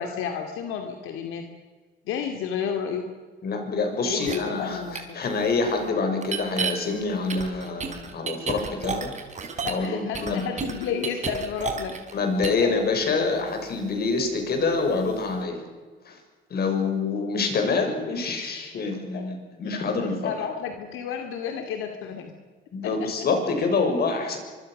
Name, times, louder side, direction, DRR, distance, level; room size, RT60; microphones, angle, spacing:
voice 1, 0.0-1.4 2.1-3.1 4.0-5.2 9.6-12.0 12.6-12.7 19.1-19.3 20.2-22.3 22.8-23.1, left 7 dB, 85° left, 5 dB, 2.6 m, -31 dB
voice 2, 3.4-9.1 9.6-10.4 12.1-15.6 16.0-16.2 16.5-20.3 22.7-24.4, left 4 dB, 50° left, 4 dB, 6.6 m, -26 dB
sound 1, 4.2-4.4 4.9-5.0 6.2-6.7 7.3-9.9 10.1-12.1 12.4-12.6, right 6 dB, 35° right, 4.2 m, -30 dB
25.0 x 24.0 x 6.7 m, 1.4 s
cardioid pair, 120°, 20 cm